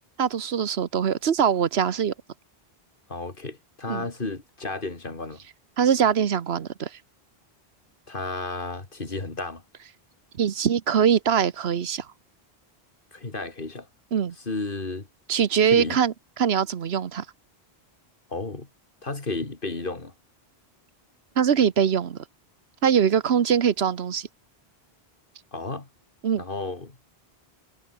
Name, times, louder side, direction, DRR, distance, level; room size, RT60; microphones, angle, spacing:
voice 1, 0.2-2.1 3.9-4.1 5.8-6.9 10.4-12.1 14.1-14.3 15.3-17.2 21.4-22.2 22.8-24.3 26.2-26.4, right 8 dB, 80° right, 1.2 m, -22 dB
voice 2, 3.1-5.4 8.1-9.6 13.1-13.9 14.4-15.1 15.6-16.0 18.3-18.7 19.0-20.1 25.5-25.9 26.4-27.0, left 3 dB, 55° left, 2.8 m, -33 dB
omnidirectional pair, 1.1 m